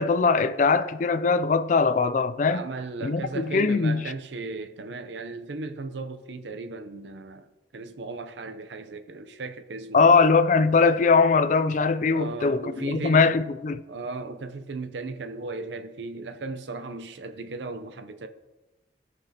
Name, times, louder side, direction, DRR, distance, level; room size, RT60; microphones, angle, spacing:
voice 1, 0.0-2.7 3.0-3.2 3.5-4.0 9.9-13.8, left 4 dB, 45° left, 0.4 m, -21 dB
voice 2, 2.5-7.5 7.7-10.2 12.1-13.3 13.9-18.3, right 3 dB, 80° right, 0.6 m, -36 dB
16.5 x 6.0 x 2.8 m
head